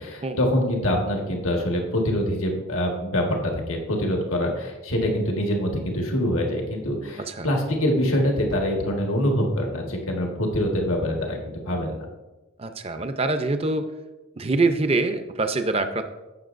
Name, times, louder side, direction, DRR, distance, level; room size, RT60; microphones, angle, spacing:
voice 1, 0.0-12.1, equal, 85° left, 1 dB, 1.6 m, -25 dB
voice 2, 12.6-13.9 14.4-16.0, right 3 dB, 30° right, 8 dB, 0.6 m, -24 dB
15.5 x 6.3 x 2.6 m, 1.1 s
head